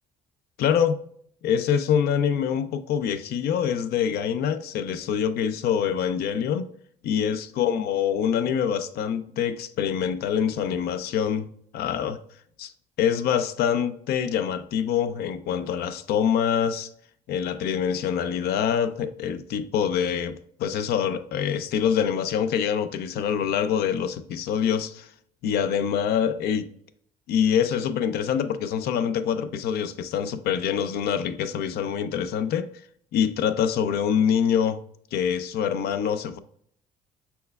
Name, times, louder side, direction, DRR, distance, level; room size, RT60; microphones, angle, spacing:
voice 1, 0.6-1.0 1.4-6.7 7.0-11.5 11.7-12.2 12.6-12.7 13.0-16.9 17.3-25.1 25.4-26.7 27.3-32.7 33.1-34.8 35.1-36.4, left 8 dB, 70° left, 0.4 m, -25 dB
5.4 x 4.3 x 2.2 m
cardioid pair, 110°, 17 cm